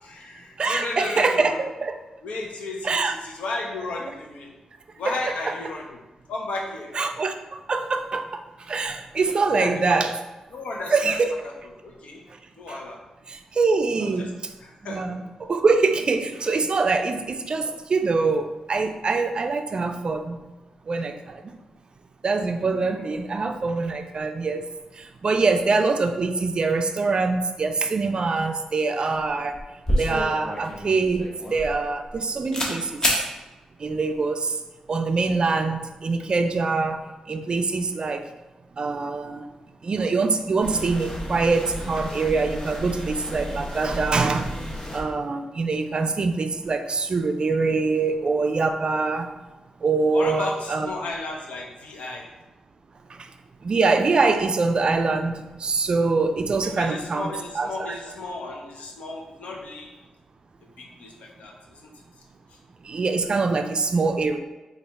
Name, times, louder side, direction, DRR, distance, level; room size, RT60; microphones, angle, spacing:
voice 1, 0.0-1.6 2.2-4.5 5.0-6.0 6.3-6.9 9.5-10.0 10.5-11.2 11.4-11.5 11.8-12.2 12.6-13.0 14.0-14.3 14.6-15.2 22.7-23.2 50.1-52.2 56.6-59.9 60.8-61.9 62.5-62.6, left 2 dB, 80° left, 0 dB, 0.7 m, -34 dB
voice 2, 0.6-2.0 2.8-3.1 5.1-5.5 6.9-10.1 10.9-11.3 12.7-12.8 13.3-14.3 14.8-20.4 20.9-21.5 22.2-24.7 24.9-29.6 30.0-33.2 33.8-34.6 34.9-38.3 38.8-39.5 39.8-44.5 44.9-49.4 49.8-50.9 53.1-53.3 53.6-57.3 57.5-57.9 62.8-64.4, right 4 dB, 45° right, 6 dB, 0.3 m, -24 dB
sound 1, 29.5-32.2 32.5-32.7 33.0-33.2, equal, 30° left, 0.8 m, -26 dB
sound 2, 40.6-45.0, equal, 65° left, 1.3 m, -34 dB
3.9 x 2.4 x 3.3 m, 1.1 s
cardioid pair, 75°, 2 cm